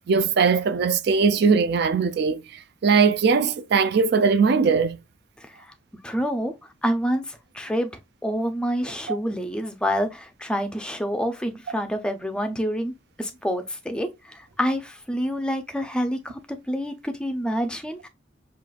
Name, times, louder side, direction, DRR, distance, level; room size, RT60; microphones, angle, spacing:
voice 1, 0.1-2.4 2.8-5.0, right 5 dB, 55° right, 0.4 m, -20 dB
voice 2, 5.4-5.7 6.0-6.5 6.8-7.9 8.2-12.9 13.2-18.1, equal, 5° left, 0.5 m, -27 dB
5.4 x 2.4 x 2.4 m
head